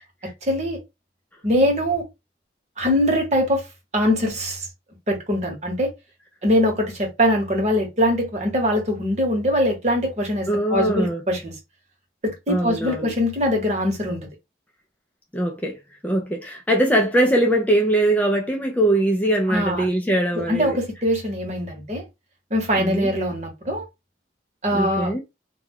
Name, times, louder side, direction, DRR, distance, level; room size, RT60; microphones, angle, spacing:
voice 1, 0.4-0.8 1.4-2.0 2.8-3.6 3.9-4.7 5.1-5.9 6.4-11.5 12.2-14.2 19.5-19.9 20.3-22.0 22.5-23.8 24.6-25.1, equal, 40° right, 1.0 m, -22 dB
voice 2, 10.5-11.2 12.5-13.1 15.3-20.8 22.8-23.1 24.7-25.2, right 1 dB, 10° left, 0.3 m, -21 dB
2.2 x 2.2 x 3.4 m
head